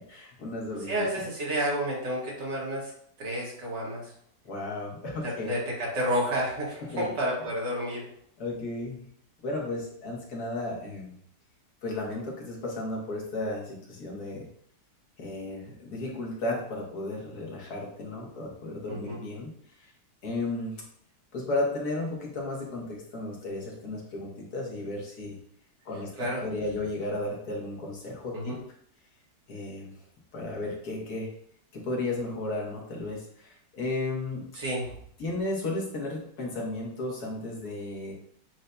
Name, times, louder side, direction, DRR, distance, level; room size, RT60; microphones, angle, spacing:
voice 1, 0.1-1.0 4.4-5.5 6.8-7.1 8.4-9.1 9.4-11.2 11.8-14.5 15.2-19.5 19.8-19.9 20.2-20.8 21.3-25.4 25.8-26.1 26.4-28.6 29.5-29.9 30.3-31.3 31.7-34.5 35.2-38.1, left 2 dB, 65° left, -2 dB, 1.6 m, -34 dB
voice 2, 0.9-2.9 3.2-4.1 5.2-8.0 18.9-19.2 26.2-26.4 28.3-28.6 34.6-34.9, equal, 80° right, -5 dB, 2.2 m, -30 dB
7.7 x 2.7 x 2.2 m, 0.65 s
omnidirectional pair, 1.8 m